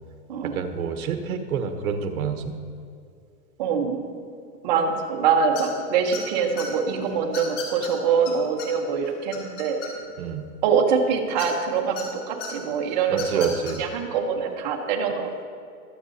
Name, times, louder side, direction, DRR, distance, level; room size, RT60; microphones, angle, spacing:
voice 1, 0.4-2.6 10.2-10.5 13.1-13.8, right 6 dB, 65° right, 7 dB, 1.2 m, -28 dB
voice 2, 3.6-4.1 4.6-9.8 10.6-15.4, right 6 dB, 30° right, 2 dB, 0.9 m, -24 dB
sound 1, 5.5-5.8 6.1-6.6 7.3-7.9 8.2-8.3 8.6-8.7 9.0-10.2 11.4-12.0 12.4-12.5 13.1-13.7, left 7 dB, 50° left, 2.5 m, -35 dB
21.5 x 7.4 x 2.7 m, 2.3 s
supercardioid pair, 170°, 46 cm